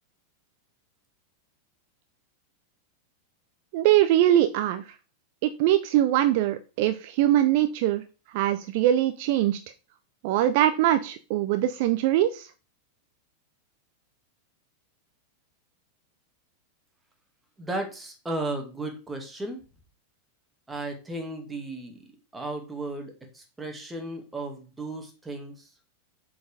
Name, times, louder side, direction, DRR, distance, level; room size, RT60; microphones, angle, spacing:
voice 1, 3.7-4.9 5.4-8.0 8.3-9.6 10.2-12.5, right 12 dB, 50° right, 11 dB, 0.5 m, -22 dB
voice 2, 17.6-19.6 20.7-22.0 22.3-25.7, right 2 dB, 10° right, 3 dB, 2.3 m, -35 dB
7.6 x 4.7 x 4.9 m, 0.34 s
figure-of-eight pair, 90°, 0 cm